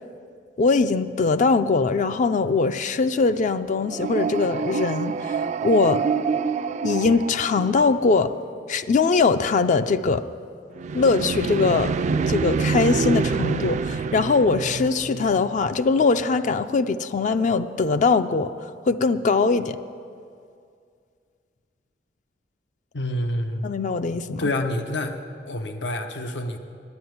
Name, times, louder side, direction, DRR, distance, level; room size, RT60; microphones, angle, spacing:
voice 1, 0.6-5.1 5.4-6.0 6.8-8.4 8.7-10.2 10.9-11.9 12.3-18.5 18.9-19.8 23.6-24.5, left 4 dB, 45° left, 11 dB, 0.4 m, -21 dB
sound 1, 3.8-8.2 10.8-15.7, right 5 dB, 40° right, 0.3 m, -26 dB
voice 2, 22.9-23.7 24.4-25.2 25.4-26.6, left 1 dB, 90° left, 6 dB, 0.9 m, -27 dB
9.6 x 9.5 x 9.3 m, 2.3 s
head